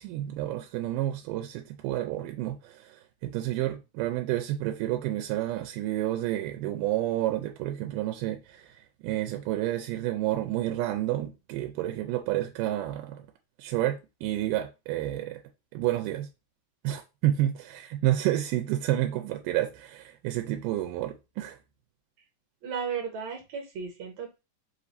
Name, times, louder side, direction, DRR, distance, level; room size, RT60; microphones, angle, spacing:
voice 1, 0.0-13.2 13.6-15.4 15.7-16.3 16.8-21.6, right 14 dB, 90° right, 2.2 m, -30 dB
voice 2, 22.6-24.4, right 6 dB, 70° right, 2.0 m, -35 dB
4.9 x 2.5 x 4.1 m
omnidirectional pair, 3.7 m